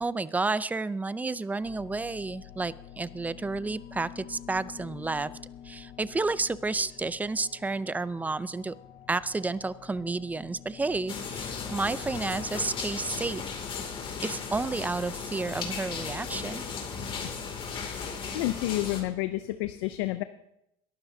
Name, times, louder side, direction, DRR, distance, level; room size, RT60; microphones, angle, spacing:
voice 1, 0.0-5.3 5.6-8.8 9.1-13.4 14.2-16.6, right 3 dB, 10° right, 17 dB, 0.5 m, -31 dB
sound 1, 1.6-19.2, left 10 dB, 60° left, 1.3 m, -48 dB
sound 2, 11.1-19.0, left 5 dB, 45° left, 2.6 m, -36 dB
voice 2, 18.3-20.2, left 16 dB, 80° left, 11 dB, 0.6 m, -30 dB
22.0 x 12.0 x 2.8 m, 0.82 s
supercardioid pair, 100°, 13 cm